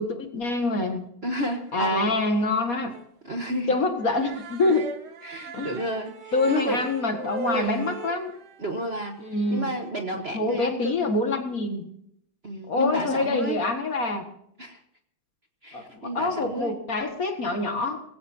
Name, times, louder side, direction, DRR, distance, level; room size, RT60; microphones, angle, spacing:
voice 1, 0.0-1.1 1.7-2.9 3.7-4.9 5.5-5.7 6.3-8.3 9.2-9.7 10.2-11.8 12.7-14.2 15.7-18.0, left 2 dB, 45° left, 5 dB, 2.1 m, -26 dB
voice 2, 1.2-2.1 3.2-3.7 5.2-6.9 7.5-7.9 8.6-9.2 9.5-11.0 12.4-13.6 14.6-14.8 15.6-16.8, equal, 35° right, 4 dB, 1.3 m, -31 dB
sound 1, 1.5-2.1 2.4-2.5 2.9-3.1 3.4-3.6 3.9-9.9, right 5 dB, 80° right, 2.2 m, -39 dB
20.0 x 16.5 x 2.8 m, 0.70 s
omnidirectional pair, 2.2 m